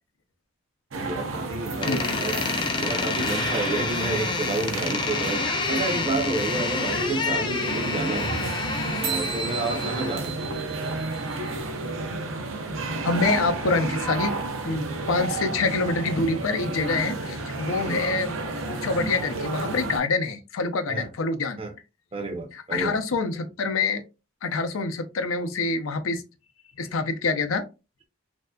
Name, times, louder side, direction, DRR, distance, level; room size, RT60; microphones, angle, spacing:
voice 1, 0.9-2.4 2.8-8.4 9.0-11.1 17.9-18.0 20.9-21.1 21.6-21.7 22.1-23.0, right 2 dB, 30° right, 0.5 m, -30 dB
sound 1, 0.9-20.0, right 2 dB, 80° right, 0.6 m, -32 dB
voice 2, 1.8-2.2 5.5-5.6 6.9-7.1 13.0-14.4 14.6-21.6 22.5-24.0 24.4-26.2 26.8-27.6, left 3 dB, 85° left, 0.5 m, -26 dB
Door, 1.8-10.3, left 4 dB, 25° left, 0.4 m, -29 dB
sound 2, 9.0-11.7, right 7 dB, 65° right, 1.1 m, -35 dB
3.3 x 2.7 x 2.2 m
head